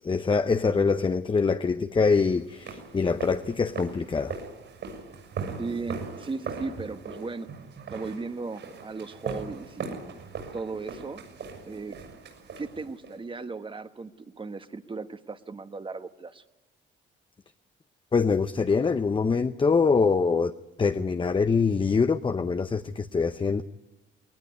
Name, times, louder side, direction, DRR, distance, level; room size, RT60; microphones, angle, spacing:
voice 1, 0.0-4.4 18.1-20.5 20.8-23.6, left 5 dB, 25° left, 9 dB, 0.7 m, -24 dB
sound 1, 2.1-13.2, right 5 dB, 70° right, 6.8 m, -40 dB
voice 2, 5.6-7.5 7.9-10.1 10.5-11.2 11.6-12.0 12.6-16.4, right 4 dB, 25° right, 10 dB, 1.3 m, -36 dB
20.5 x 19.5 x 9.5 m, 1.1 s
cardioid pair, 90°, 20 cm